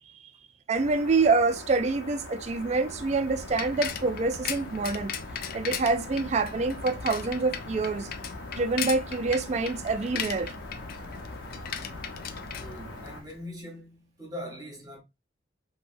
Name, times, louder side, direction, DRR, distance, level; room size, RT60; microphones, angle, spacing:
sound 1, 0.7-13.2, left 2 dB, 80° left, 0.7 m, -43 dB
voice 1, 0.7-5.1 5.5-8.1 8.5-10.5, right 3 dB, 35° right, 0.3 m, -26 dB
Bicycle, 2.6-13.4, left 7 dB, 50° left, 0.4 m, -38 dB
voice 2, 12.6-15.0, equal, 20° right, 1.1 m, -41 dB
3.3 x 2.2 x 2.5 m
head